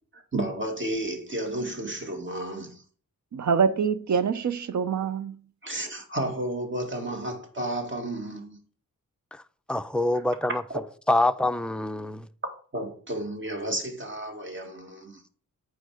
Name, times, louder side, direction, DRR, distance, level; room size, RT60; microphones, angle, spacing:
voice 1, 0.1-2.8 5.6-8.6 12.7-15.2, right 1 dB, 35° right, 2.1 m, -32 dB
voice 2, 3.3-5.4, right 6 dB, 60° right, 0.6 m, -25 dB
voice 3, 9.7-10.6 11.1-12.3, left 1 dB, 5° left, 0.5 m, -25 dB
8.9 x 4.7 x 5.0 m
cardioid pair, 75°, 33 cm